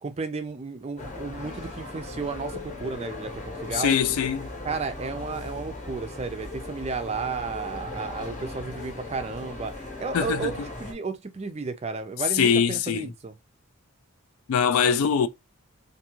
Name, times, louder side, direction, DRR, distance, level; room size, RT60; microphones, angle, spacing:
voice 1, 0.0-3.9 4.6-13.3, right 4 dB, 30° right, 0.3 m, -33 dB
sound 1, 1.0-10.9, left 2 dB, 35° left, 0.8 m, -38 dB
voice 2, 3.7-4.5 10.1-10.5 12.3-13.1 14.5-15.3, left 7 dB, 75° left, 0.3 m, -22 dB
2.6 x 2.3 x 2.9 m
head